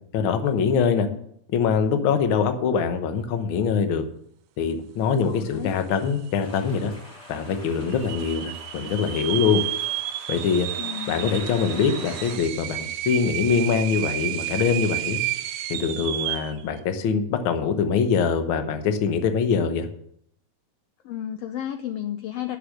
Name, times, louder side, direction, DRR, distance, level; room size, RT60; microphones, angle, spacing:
voice 1, 0.1-1.1 1.5-4.0 4.6-6.9 7.3-9.6 10.3-10.7 11.1-15.2 15.7-19.9, left 6 dB, 60° left, 7 dB, 1.4 m, -23 dB
voice 2, 0.9-1.2 5.3-5.8 10.8-11.3 21.0-22.6, left 11 dB, 75° left, 7 dB, 1.5 m, -33 dB
sound 1, 5.7-5.8 6.0-6.6 7.1-7.2 7.9-16.6, right 15 dB, 80° right, 2.0 m, -31 dB
sound 2, 6.4-12.4, left 1 dB, 40° left, 4.1 m, -43 dB
11.0 x 6.8 x 6.4 m, 0.70 s
omnidirectional pair, 3.4 m